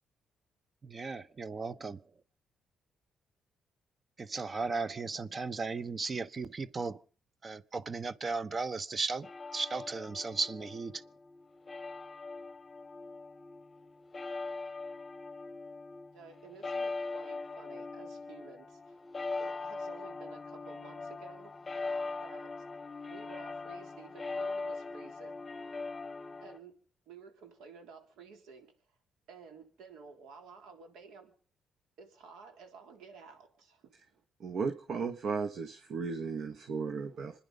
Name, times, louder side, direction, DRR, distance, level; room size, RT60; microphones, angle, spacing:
voice 1, 0.8-2.0 4.2-7.0 7.4-11.0, right 4 dB, 35° right, 0.9 m, -36 dB
sound 1, 9.2-26.6, left 3 dB, 25° left, 1.0 m, -41 dB
voice 2, 16.1-19.0 19.4-21.6 22.2-22.5 23.1-25.4 26.4-26.8 27.1-28.7 29.3-31.3 32.0-33.9, right 5 dB, 85° right, 3.6 m, -53 dB
voice 3, 34.4-37.3, right 5 dB, 65° right, 1.4 m, -35 dB
26.5 x 10.0 x 5.3 m
cardioid pair, 90°, 0 cm